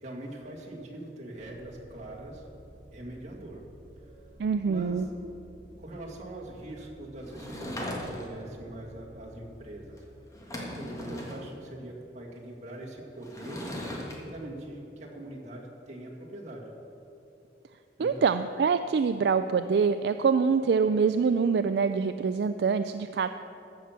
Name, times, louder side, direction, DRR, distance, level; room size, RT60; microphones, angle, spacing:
voice 1, 0.0-2.5 2.9-3.6 4.0-4.2 4.6-5.0 5.8-10.0 10.7-13.7 14.2-16.7 18.0-18.2, right 1 dB, 40° right, -3 dB, 2.1 m, -42 dB
sound 1, 1.4-9.8, right 1 dB, 25° right, 2.1 m, -52 dB
voice 2, 4.4-5.1 18.0-23.3, right 5 dB, 65° right, 9 dB, 0.3 m, -25 dB
Sliding door / Wood, 7.2-8.5 10.0-10.1 10.3-11.4 13.2-14.2, left 1 dB, 20° left, 1.6 m, -38 dB
14.0 x 5.8 x 7.4 m, 2.8 s
head